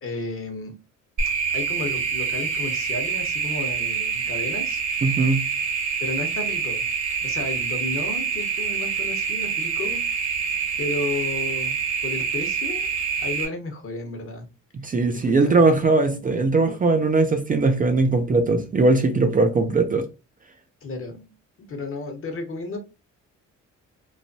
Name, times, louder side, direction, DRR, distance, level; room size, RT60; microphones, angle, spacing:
voice 1, 0.0-0.7 1.5-4.8 6.0-6.8 7.2-10.0 10.8-12.9 13.2-14.5 15.1-15.5 20.8-21.3 21.6-22.8, left 2 dB, 45° left, 0.9 m, -33 dB
sound 1, 1.2-13.4, right 6 dB, 75° right, 1.1 m, -26 dB
voice 2, 5.0-5.4 14.8-20.0, right 3 dB, 30° right, 0.5 m, -20 dB
3.1 x 2.2 x 2.6 m
cardioid pair, 90°, 30 cm